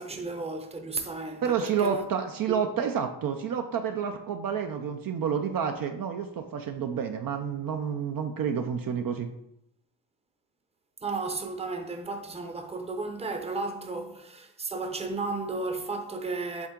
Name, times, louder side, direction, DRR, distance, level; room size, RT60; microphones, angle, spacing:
voice 1, 0.0-2.1 11.0-16.7, right 3 dB, 15° right, 0.7 m, -34 dB
voice 2, 1.4-9.3, right 7 dB, 50° right, 0.5 m, -29 dB
7.2 x 3.5 x 3.7 m
cardioid pair, 110°, 44 cm